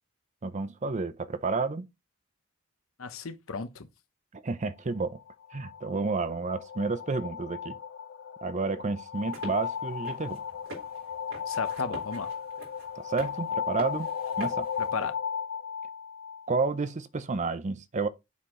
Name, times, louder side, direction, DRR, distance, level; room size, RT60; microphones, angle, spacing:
voice 1, 0.4-1.9 4.3-5.2 5.5-7.8 8.4-10.4 13.0-14.1 14.4-14.7 16.5-18.1, right 4 dB, 35° right, 0.6 m, -30 dB
voice 2, 3.0-3.9 11.5-12.3 14.8-15.1, left 4 dB, 75° left, 0.9 m, -35 dB
sound 1, 5.2-16.8, left 7 dB, 55° left, 0.3 m, -36 dB
sound 2, 9.1-15.1, right 2 dB, 70° right, 3.7 m, -46 dB
7.1 x 4.4 x 3.7 m
head